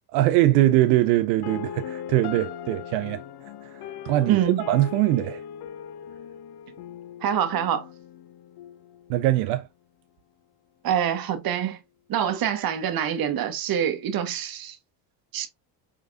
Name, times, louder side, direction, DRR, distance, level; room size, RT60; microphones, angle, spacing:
voice 1, 0.1-3.2 4.0-4.4 4.7-5.4 9.1-9.7, right 15 dB, 85° right, 0.6 m, -21 dB
sound 1, 1.4-9.4, left 9 dB, 55° left, 0.6 m, -39 dB
voice 2, 4.3-4.6 7.2-7.9 10.8-11.8 12.1-14.8 15.3-15.5, right 9 dB, 45° right, 1.0 m, -25 dB
4.7 x 3.3 x 2.4 m
supercardioid pair, 85°, 48 cm